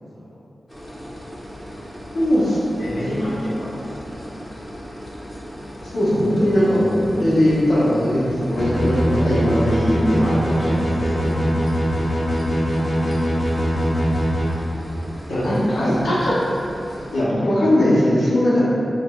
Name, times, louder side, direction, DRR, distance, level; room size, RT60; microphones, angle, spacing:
sound 1, 0.7-17.2, equal, 15° left, 0.7 m, -37 dB
voice 1, 2.1-3.3 5.8-11.3 15.3-16.3 17.1-18.6, equal, 85° left, -8 dB, 0.7 m, -20 dB
voice 2, 2.9-4.5, equal, 30° right, -10 dB, 0.7 m, -43 dB
sound 2, 8.6-14.5, equal, 45° left, 0.9 m, -21 dB
4.8 x 2.1 x 2.3 m, 2.8 s
wide cardioid pair, 110°, 0 cm